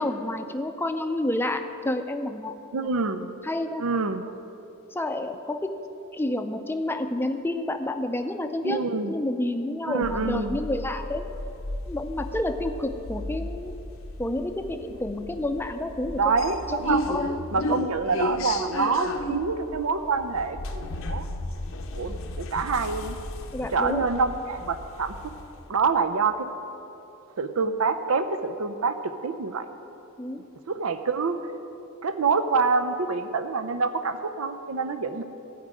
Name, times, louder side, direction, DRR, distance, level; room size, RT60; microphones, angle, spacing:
voice 1, 0.0-2.9 3.4-3.8 4.9-5.7 6.1-8.8 9.1-11.2 11.9-13.8 14.2-16.3 16.7-16.8 17.1-17.4 23.5-24.1 30.2-30.4 34.9-35.0, left 1 dB, 10° left, 7 dB, 0.5 m, -29 dB
voice 2, 2.7-3.3 3.8-4.3 8.6-9.1 9.8-10.6 16.1-17.0 17.5-21.3 22.0-23.2 23.7-25.3 25.7-26.4 27.4-29.0 29.2-29.7 30.7-31.4 32.0-35.2, right 4 dB, 80° right, 10 dB, 0.6 m, -26 dB
sound 1, 10.0-25.7, left 2 dB, 65° left, 0.7 m, -34 dB
13.5 x 5.2 x 8.8 m, 2.9 s
head